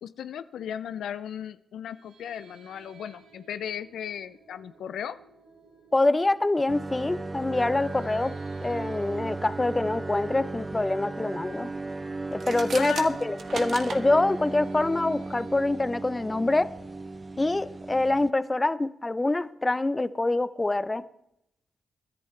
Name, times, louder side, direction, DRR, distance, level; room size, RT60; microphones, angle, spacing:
voice 1, 0.0-5.2 12.7-13.2, left 9 dB, 80° left, 14 dB, 0.4 m, -36 dB
sound 1, 1.9-18.0, right 4 dB, 85° right, 3.2 m, -56 dB
voice 2, 5.9-8.3 8.6-11.7 12.3-16.7 17.4-21.0, left 2 dB, 25° left, 15 dB, 0.7 m, -25 dB
sound 2, 6.7-18.3, right 3 dB, 30° right, 0.6 m, -36 dB
sound 3, 12.3-14.0, right 5 dB, 65° right, 1.3 m, -37 dB
23.0 x 10.5 x 3.3 m, 0.78 s
supercardioid pair, 55°, 0 cm